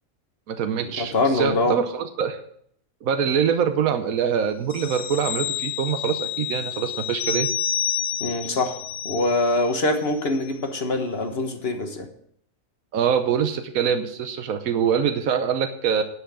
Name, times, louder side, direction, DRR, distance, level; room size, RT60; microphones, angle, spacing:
voice 1, 0.5-2.4 3.0-7.5 12.9-16.0, right 7 dB, 80° right, 8 dB, 1.3 m, -24 dB
voice 2, 1.0-1.8 8.2-12.1, left 2 dB, 45° left, 5 dB, 1.4 m, -24 dB
sound 1, 4.7-9.8 10.1-10.3, left 10 dB, 85° left, 1.2 m, -29 dB
11.0 x 5.8 x 7.2 m, 0.68 s
omnidirectional pair, 1.5 m